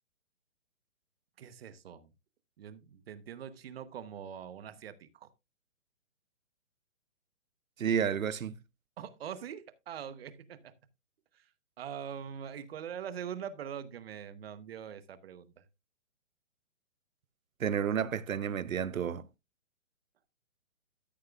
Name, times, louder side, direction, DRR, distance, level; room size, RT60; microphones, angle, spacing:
voice 1, 1.4-2.1 2.6-5.3 9.0-10.7 11.3-11.5 11.8-15.6, right 8 dB, 50° right, 1.0 m, -43 dB
voice 2, 7.8-8.6 17.6-19.3, right 8 dB, 85° right, 0.9 m, -31 dB
13.0 x 6.5 x 2.3 m
hypercardioid pair, 150°, 40 cm